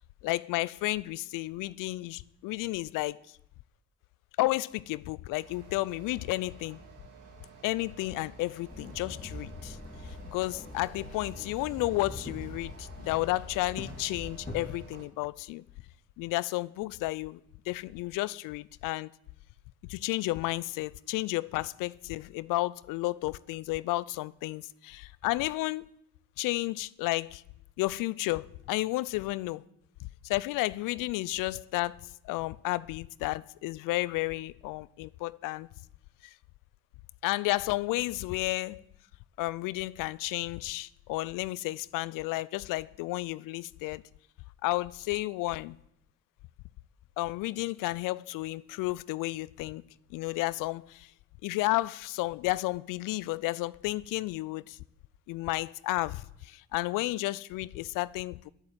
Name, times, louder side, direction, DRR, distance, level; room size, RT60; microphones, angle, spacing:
voice 1, 0.2-3.2 4.4-6.8 7.6-9.8 10.3-15.6 16.2-17.4 17.7-19.1 19.8-25.9 26.4-27.4 27.8-29.6 30.2-35.7 36.2-36.3 37.2-38.8 39.4-44.0 44.6-45.8 47.2-49.8 50.1-51.1 51.4-54.8 55.3-58.5, left 19 dB, 70° left, 0.6 m, -32 dB
sound 1, 5.4-15.1, right 4 dB, 65° right, 2.6 m, -52 dB
Walk footsteps / Chatter / Hiss, 8.7-14.7, left 1 dB, 25° left, 3.1 m, -43 dB
10.5 x 8.7 x 7.5 m
hypercardioid pair, 45°, 34 cm